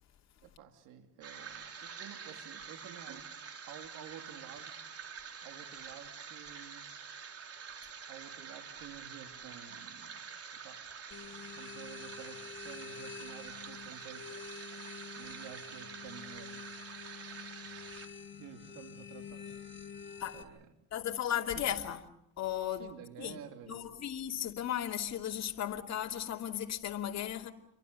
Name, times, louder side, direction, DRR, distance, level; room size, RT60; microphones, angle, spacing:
voice 1, 0.4-3.3 3.7-4.7 5.4-6.9 8.1-10.2 10.5-10.8 11.2-14.3 15.2-16.7 18.4-19.6 20.3-20.7 21.5-21.6 22.8-24.0, right 9 dB, 90° right, 3.0 m, -51 dB
sound 1, 1.2-18.1, right 6 dB, 50° right, 3.8 m, -47 dB
sound 2, 11.1-20.4, left 6 dB, 35° left, 5.7 m, -48 dB
voice 2, 20.9-22.0 22.4-22.9 23.2-23.4 23.7-27.5, left 10 dB, 55° left, 2.7 m, -35 dB
29.0 x 23.5 x 6.9 m
cardioid pair, 90°, 32 cm